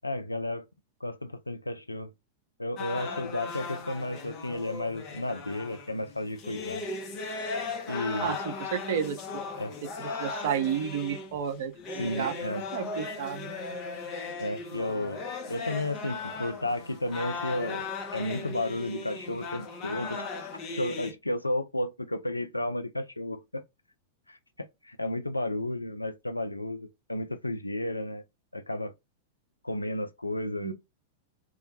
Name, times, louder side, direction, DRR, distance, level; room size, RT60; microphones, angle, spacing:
voice 1, 0.0-0.7 1.0-2.1 2.6-6.8 7.9-8.4 9.6-9.7 12.0-12.6 14.4-15.2 15.5-20.5 20.8-23.6 24.3-24.4 24.8-28.2 28.5-28.9 29.6-30.7, left 1 dB, 85° left, 0.3 m, -33 dB
sound 1, 2.8-21.1, left 4 dB, 35° left, 0.6 m, -37 dB
voice 2, 8.2-9.2 10.0-12.3 12.7-13.5 30.6-30.7, right 8 dB, 55° right, 0.6 m, -31 dB
2.2 x 2.1 x 2.7 m
figure-of-eight pair, 95°, 0 cm